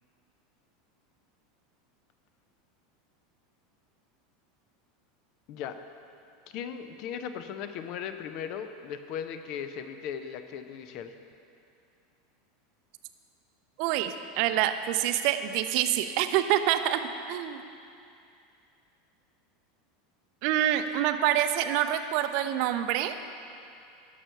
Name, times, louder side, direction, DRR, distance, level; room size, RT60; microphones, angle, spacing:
voice 1, 6.5-11.2, left 8 dB, 50° left, 9 dB, 0.6 m, -37 dB
voice 2, 13.8-17.0 17.3-17.6 20.4-23.1, right 11 dB, 50° right, 9 dB, 0.5 m, -26 dB
11.0 x 6.6 x 5.7 m, 2.6 s
figure-of-eight pair, 80°, 0 cm